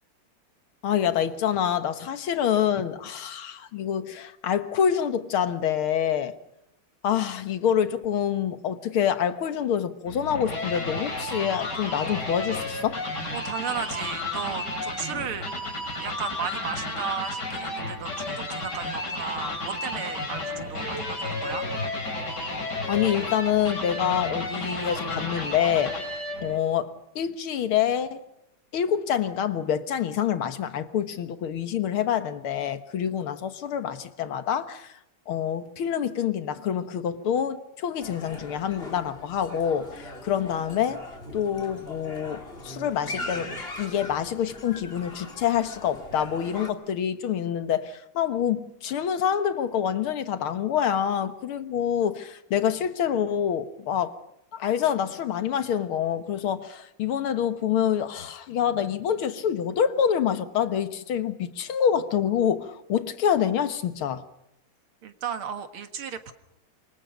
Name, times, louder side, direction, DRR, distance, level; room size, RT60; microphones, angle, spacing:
voice 1, 0.8-6.4 7.0-13.0 22.9-26.0 26.4-28.2 28.7-34.9 35.3-41.1 41.3-54.2 54.5-64.2, left 9 dB, 80° left, 2.2 m, -26 dB
sound 1, 10.1-26.6, left 2 dB, 50° left, 4.6 m, -32 dB
voice 2, 13.3-15.5 16.0-21.7 65.0-66.3, right 7 dB, 85° right, 2.5 m, -34 dB
sound 2, 38.0-46.7, left 2 dB, 25° left, 3.0 m, -40 dB
27.0 x 24.0 x 5.3 m
omnidirectional pair, 2.3 m